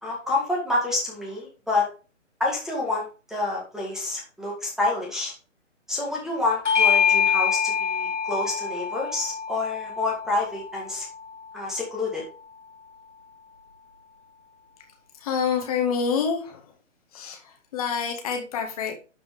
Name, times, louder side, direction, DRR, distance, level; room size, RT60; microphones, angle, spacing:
voice 1, 0.0-1.9 2.4-5.3 5.9-11.1 11.5-12.2, left 2 dB, ahead, -2 dB, 1.9 m, -28 dB
Bell / Doorbell, 6.6-11.5, left 7 dB, 70° left, 1.9 m, -25 dB
voice 2, 15.2-16.6 17.1-17.4 17.7-18.9, left 6 dB, 30° left, 3 dB, 1.9 m, -26 dB
12.0 x 5.3 x 3.6 m, 0.34 s
figure-of-eight pair, 140°, 37 cm